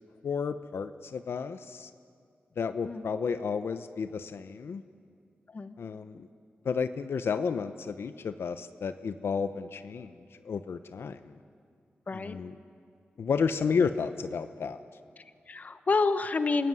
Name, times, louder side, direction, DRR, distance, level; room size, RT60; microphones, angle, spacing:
voice 1, 0.2-1.9 2.6-4.8 5.8-6.3 6.6-10.1 10.5-11.2 12.1-12.5 13.2-14.8, left 5 dB, 80° left, 10 dB, 0.8 m, -31 dB
voice 2, 12.1-12.4 15.2-16.7, left 3 dB, 40° left, 11 dB, 1.1 m, -29 dB
29.5 x 16.5 x 9.8 m, 2.3 s
wide cardioid pair, 130°, 4 cm